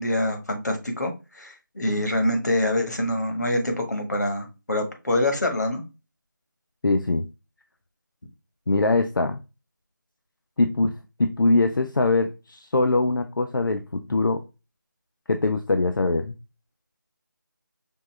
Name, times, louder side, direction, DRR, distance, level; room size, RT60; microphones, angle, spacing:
voice 1, 0.0-5.8, left 1 dB, 55° left, 4 dB, 1.3 m, -25 dB
voice 2, 6.8-7.3 8.7-9.4 10.6-14.4 15.3-16.4, left 2 dB, 75° left, 7 dB, 0.6 m, -22 dB
5.3 x 2.5 x 3.1 m, 0.28 s
figure-of-eight pair, 175°, 11 cm